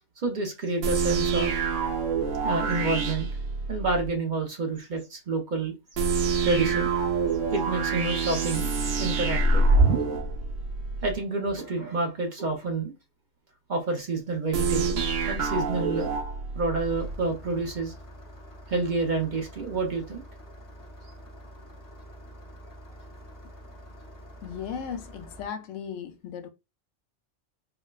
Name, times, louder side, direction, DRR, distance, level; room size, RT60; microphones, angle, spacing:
voice 1, 0.2-1.5 2.4-3.3 3.7-5.7 6.4-7.0 7.5-9.6 11.0-12.9 13.7-16.1 16.5-17.9 18.7-20.2, right 3 dB, 45° right, 0.7 m, -29 dB
sound 1, 0.8-4.1 6.0-11.2 14.5-17.2, right 4 dB, 90° right, 1.0 m, -26 dB
Engine starting, 16.8-25.5, equal, 20° left, 0.5 m, -46 dB
voice 2, 24.4-26.5, left 7 dB, 85° left, 0.9 m, -36 dB
4.4 x 2.1 x 2.3 m
omnidirectional pair, 1.2 m